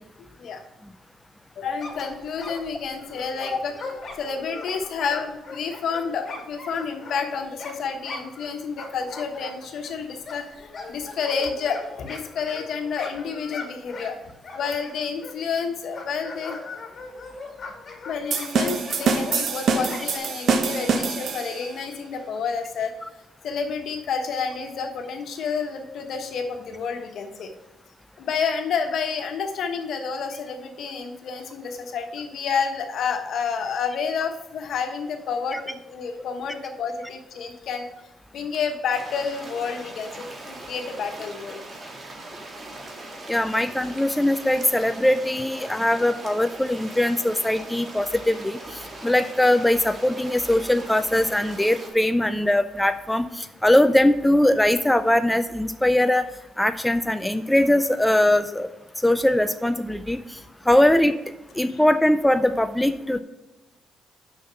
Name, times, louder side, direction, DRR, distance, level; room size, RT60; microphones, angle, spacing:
voice 1, 1.6-14.2 14.5-16.6 18.0-22.9 23.4-27.5 28.2-37.9 38.3-41.6 61.7-61.8, left 6 dB, 70° left, 5 dB, 1.2 m, -29 dB
sound 1, 1.8-8.5 8.8-15.6 15.9-20.2, left 3 dB, 45° left, 2.0 m, -39 dB
sound 2, 18.3-21.7, right 5 dB, 60° right, 1.0 m, -24 dB
sound 3, 38.9-51.9, right 2 dB, 35° right, 1.8 m, -40 dB
voice 2, 43.3-56.3 56.6-58.7 59.0-60.2 60.7-61.1 61.6-63.2, left 1 dB, 5° left, 9 dB, 0.4 m, -21 dB
6.4 x 5.8 x 6.9 m, 0.97 s
cardioid pair, 90°, 0 cm